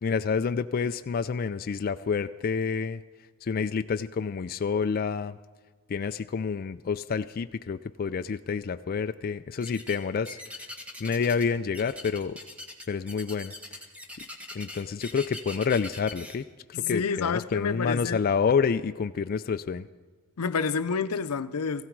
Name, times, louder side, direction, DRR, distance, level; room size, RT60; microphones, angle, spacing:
voice 1, 0.0-3.0 3.4-5.4 5.9-10.4 11.0-12.4 12.9-13.5 14.5-16.4 16.7-19.9, left 5 dB, 45° left, 9 dB, 0.4 m, -28 dB
sound 1, 9.6-10.0 10.2-11.5 11.7-16.3, left 1 dB, 5° right, 1.4 m, -42 dB
voice 2, 16.7-18.2 20.4-21.9, left 5 dB, 85° left, 12 dB, 0.6 m, -29 dB
17.0 x 15.5 x 4.6 m, 1.4 s
head